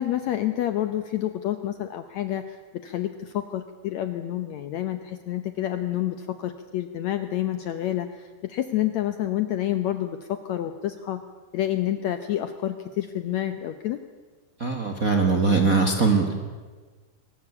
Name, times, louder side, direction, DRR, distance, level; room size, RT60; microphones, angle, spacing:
voice 1, 0.0-11.2 11.5-14.0, left 12 dB, 70° left, 9 dB, 1.7 m, -28 dB
voice 2, 14.6-16.3, right 4 dB, 35° right, 4 dB, 1.4 m, -21 dB
22.0 x 19.5 x 8.4 m, 1.4 s
omnidirectional pair, 4.1 m